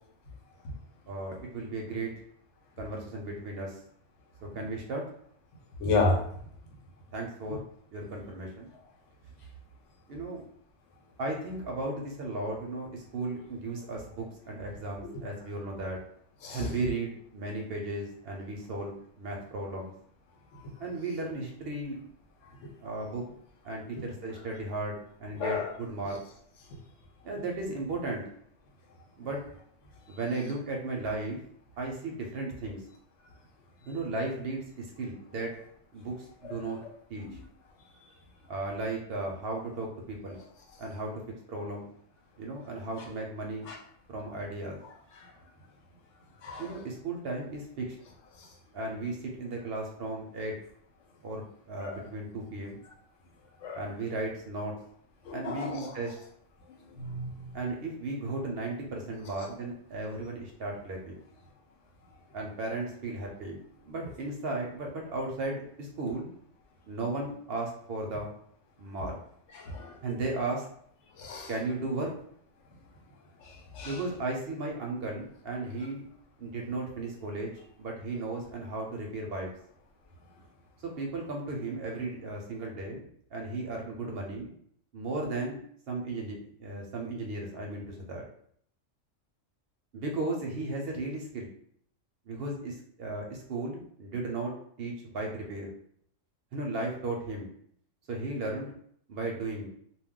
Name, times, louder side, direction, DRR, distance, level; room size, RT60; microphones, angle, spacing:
voice 1, 1.1-2.1 2.8-3.8 4.4-5.0 7.1-7.6 7.9-8.7 10.1-10.4 11.2-16.0 16.5-19.9 20.8-22.0 22.8-23.2 23.6-26.2 27.2-28.2 29.2-29.4 30.1-31.4 31.8-32.8 33.9-35.5 35.9-36.8 37.1-37.2 38.5-40.4 40.8-41.1 41.5-41.9 42.4-43.7 44.1-44.8 46.6-48.0 48.7-50.6 51.2-52.8 53.8-54.7 55.3-56.2 57.5-61.2 62.3-66.3 66.9-68.3 68.8-69.2 70.0-70.7 71.5-72.1 73.8-76.1 76.4-77.5 77.8-79.5 80.8-84.5 84.9-85.6 85.9-88.2 89.9-91.5 92.3-94.5 94.8-95.7 96.5-97.5 98.1-98.7 99.1-99.7, right 2 dB, 65° right, 0 dB, 0.7 m, -35 dB
voice 2, 5.8-6.2 7.5-7.6 16.4-16.7 25.4-25.7 36.4-36.6 37.3-37.4 43.7-43.8 46.4-46.6 51.8-52.0 53.6-53.8 55.3-55.9 57.0-57.5 69.6-69.9 71.2-71.5 73.7-73.9, left 3 dB, 75° left, -1 dB, 1.0 m, -31 dB
2.2 x 2.2 x 3.6 m, 0.65 s
omnidirectional pair, 1.3 m